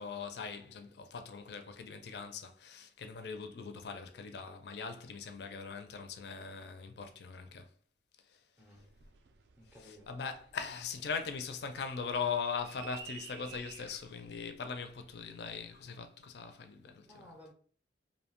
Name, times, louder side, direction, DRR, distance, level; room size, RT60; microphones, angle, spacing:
voice 1, 0.0-7.7 8.2-8.4 9.8-17.3, left 5 dB, 65° left, 0.4 m, -40 dB
voice 2, 8.6-8.9 9.6-10.1 17.0-17.5, left 1 dB, 10° right, 0.5 m, -55 dB
sound 1, 8.7-15.9, right 6 dB, 70° right, 0.3 m, -54 dB
2.7 x 2.1 x 2.9 m
head